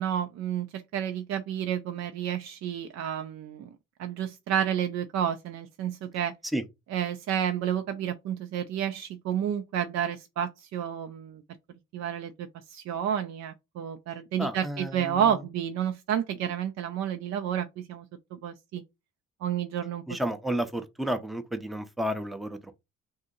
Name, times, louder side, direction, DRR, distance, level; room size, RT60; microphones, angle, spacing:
voice 1, 0.0-3.7 4.0-6.3 6.9-11.4 11.9-12.3 12.7-18.1 18.3-18.8 19.4-20.0, right 9 dB, 65° right, 0.5 m, -30 dB
voice 2, 14.4-15.4 20.1-22.8, equal, ahead, 0.5 m, -32 dB
2.7 x 2.6 x 3.7 m
cardioid pair, 90°, 30 cm